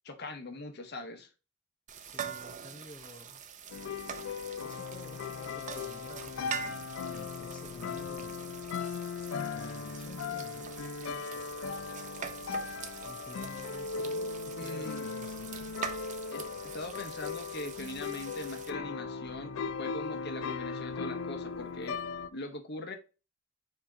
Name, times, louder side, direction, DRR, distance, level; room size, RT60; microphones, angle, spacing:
voice 1, 0.0-1.3 14.6-15.1 16.3-22.0 22.3-22.9, left 2 dB, 55° left, 0.9 m, -41 dB
sound 1, 1.9-18.7, right 7 dB, 40° right, 0.5 m, -44 dB
voice 2, 2.0-3.4 4.6-8.6 9.5-10.7 13.0-15.8, left 2 dB, 25° left, 0.5 m, -52 dB
sound 2, 3.7-22.3, left 5 dB, 85° left, 0.3 m, -38 dB
4.9 x 2.8 x 3.7 m
head